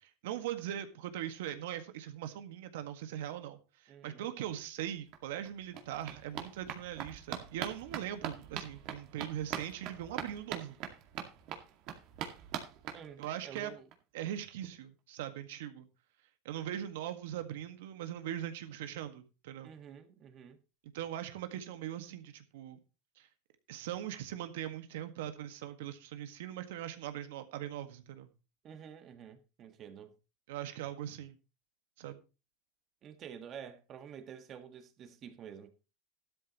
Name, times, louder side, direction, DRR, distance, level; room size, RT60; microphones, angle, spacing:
voice 1, 0.0-10.8 13.2-13.7 14.1-15.9 16.5-19.8 20.8-22.8 23.2-23.3 23.7-28.3 30.5-31.4 32.0-32.2, right 11 dB, 80° right, 1.7 m, -40 dB
voice 2, 3.9-4.3 12.9-13.9 19.6-20.6 28.6-30.1 33.0-35.7, right 8 dB, 40° right, 1.7 m, -49 dB
sound 1, 4.8-4.9 5.1-13.6 13.9-14.0 14.3-14.4 14.6-14.7, right 9 dB, 55° right, 2.1 m, -43 dB
13.0 x 12.5 x 3.1 m
supercardioid pair, 125°, 0 cm